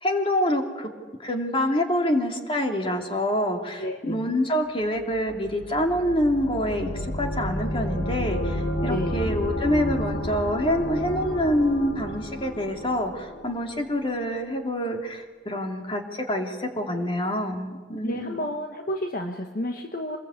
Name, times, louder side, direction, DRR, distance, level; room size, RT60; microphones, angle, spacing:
voice 1, 0.0-0.9 1.2-18.4, equal, 30° left, 2 dB, 3.0 m, -26 dB
voice 2, 3.8-4.3 8.9-9.3 18.0-20.2, left 1 dB, 50° left, 3 dB, 1.5 m, -31 dB
sound 1, 4.9-13.8, equal, 70° left, 2.4 m, -31 dB
27.0 x 21.5 x 8.5 m, 1.4 s
head